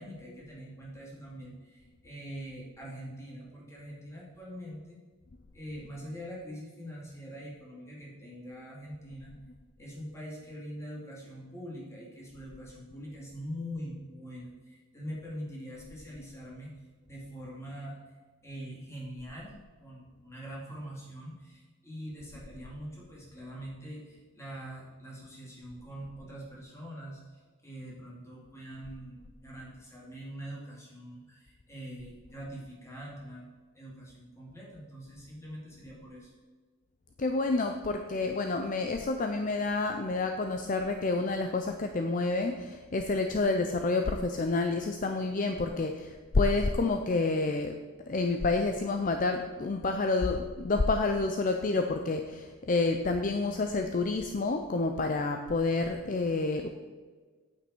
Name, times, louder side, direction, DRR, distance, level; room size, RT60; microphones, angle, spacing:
voice 1, 0.0-5.0 5.5-9.3 9.8-16.7 17.1-18.0 18.4-19.5 19.8-33.4 33.7-36.3, equal, 15° left, -4 dB, 2.6 m, -43 dB
voice 2, 37.2-47.7 48.1-56.7, left 3 dB, 40° left, 6 dB, 0.5 m, -29 dB
8.7 x 8.7 x 4.5 m, 1.4 s
head